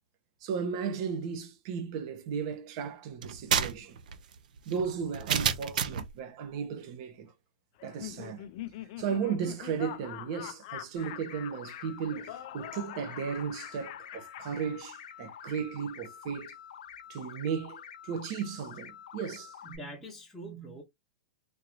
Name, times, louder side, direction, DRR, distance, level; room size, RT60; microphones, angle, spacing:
voice 1, 0.4-4.0 4.7-7.3 7.8-8.5 9.0-16.5 17.1-19.5, right 6 dB, 45° right, 1.0 m, -35 dB
sound 1, 3.2-6.1, right 7 dB, 85° right, 0.6 m, -30 dB
Laughter, 7.8-15.3, left 13 dB, 45° left, 0.4 m, -44 dB
sound 2, 11.0-19.8, left 9 dB, 90° left, 0.7 m, -48 dB
voice 2, 19.6-20.8, right 2 dB, ahead, 0.9 m, -43 dB
3.8 x 2.5 x 3.0 m
supercardioid pair, 165°, 4 cm